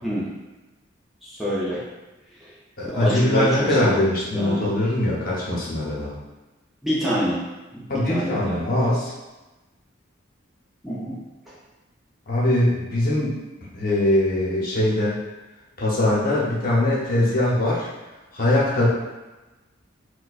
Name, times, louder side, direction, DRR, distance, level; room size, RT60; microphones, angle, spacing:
voice 1, 1.2-1.8 2.4-2.5 2.8-4.0 4.3-4.7 6.8-7.4 7.7-8.6 10.8-11.2 11.5-11.6, equal, ahead, -9 dB, 0.5 m, -26 dB
voice 2, 2.8-6.1 7.9-9.1 12.3-13.4 13.7-15.2 15.8-17.9 18.3-18.9, left 1 dB, 50° left, -6 dB, 0.9 m, -22 dB
4.3 x 2.2 x 2.4 m, 1.1 s
head